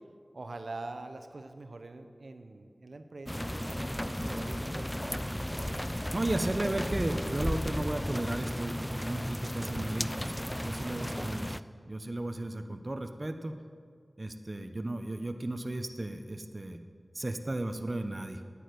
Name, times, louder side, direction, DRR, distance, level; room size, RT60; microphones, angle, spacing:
voice 1, 0.3-3.8 4.0-5.5 11.0-11.2 11.5-11.6, right 2 dB, 80° right, 7 dB, 0.7 m, -44 dB
sound 1, 3.3-11.6, equal, 10° left, 0.3 m, -34 dB
voice 2, 6.1-10.3 10.6-11.6 11.9-13.6 14.2-16.8 17.1-18.4, right 1 dB, 40° right, 7 dB, 0.7 m, -34 dB
9.0 x 8.5 x 9.2 m, 2.2 s
wide cardioid pair, 65°, 0 cm